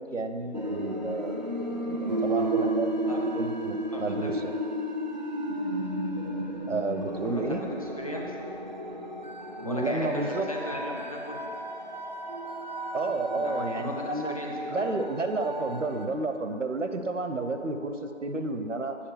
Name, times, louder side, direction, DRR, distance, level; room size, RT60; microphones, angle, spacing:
voice 1, 0.0-1.5 1.8-2.9 3.3-4.5 6.7-7.6 9.6-10.5 12.9-19.0, right 3 dB, 75° right, 7 dB, 0.8 m, -31 dB
sound 1, 0.5-16.1, right 1 dB, 35° right, 0.5 m, -33 dB
voice 2, 2.1-3.4 3.9-4.3 7.2-7.7 8.0-8.3 9.6-11.5 13.3-15.0, left 1 dB, 30° left, -1 dB, 0.8 m, -37 dB
8.8 x 4.7 x 6.8 m, 2.7 s
figure-of-eight pair, 160°, 38 cm